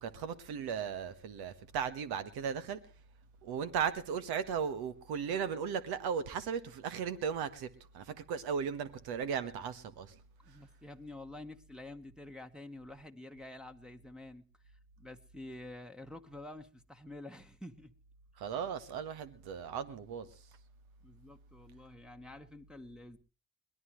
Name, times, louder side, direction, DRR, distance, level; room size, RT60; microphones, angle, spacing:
voice 1, 0.0-2.8 3.4-10.2 10.5-10.6 18.4-20.5, right 7 dB, 75° right, 1.5 m, -36 dB
voice 2, 10.4-17.9 21.0-23.2, left 1 dB, ahead, 1.2 m, -49 dB
22.0 x 18.5 x 3.2 m
hypercardioid pair, 50°, 39 cm